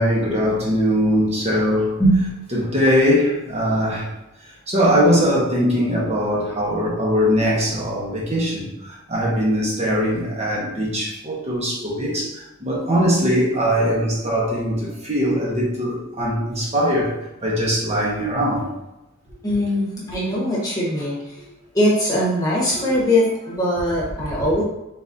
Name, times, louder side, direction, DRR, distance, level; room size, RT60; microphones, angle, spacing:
voice 1, 0.0-2.0 2.5-4.1 4.7-17.1 17.4-18.7 20.1-20.2 21.4-21.5 22.9-23.0 24.3-24.4, equal, 30° right, -4 dB, 1.1 m, -21 dB
voice 2, 2.0-2.4 19.4-21.3 21.7-24.6, equal, 15° left, -6 dB, 1.3 m, -21 dB
4.0 x 3.8 x 2.7 m, 0.96 s
head